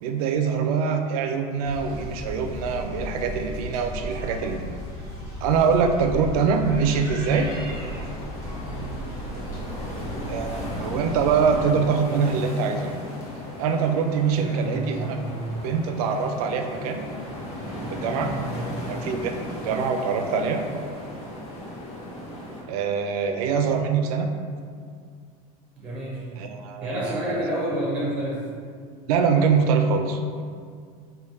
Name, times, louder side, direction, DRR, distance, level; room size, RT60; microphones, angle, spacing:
voice 1, 0.0-4.8 5.4-7.5 10.2-12.9 13.6-15.2 15.6-17.1 17.9-18.4 18.9-19.3 19.6-20.6 22.7-24.3 26.4-27.4 29.1-30.4, right 5 dB, 85° right, 6 dB, 0.4 m, -24 dB
sound 1, 1.6-11.6, equal, 15° left, 1.0 m, -35 dB
sound 2, 7.3-22.6, left 1 dB, 75° left, 0.9 m, -36 dB
voice 2, 8.6-9.0 14.3-15.5 18.2-18.8 19.7-19.8 25.7-26.3 26.8-28.5, right 1 dB, 5° right, -6 dB, 0.7 m, -30 dB
3.2 x 2.2 x 4.2 m, 2.1 s
supercardioid pair, 175°, 19 cm